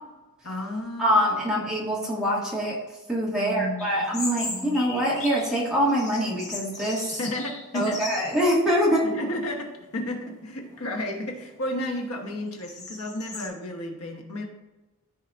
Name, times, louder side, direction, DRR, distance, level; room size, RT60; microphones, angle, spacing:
voice 1, 0.4-1.5 3.3-4.1 4.4-4.8 7.1-8.1 9.0-14.4, left 1 dB, 75° left, 2 dB, 1.2 m, -33 dB
voice 2, 1.0-2.8 3.1-7.2 7.7-9.0, equal, 5° right, -6 dB, 2.0 m, -24 dB
sound 1, 3.8-5.5 5.9-8.6 8.9-9.0 9.8-10.2 10.7-13.5, left 3 dB, 30° left, 1.8 m, -38 dB
14.0 x 4.7 x 2.6 m, 1.1 s
head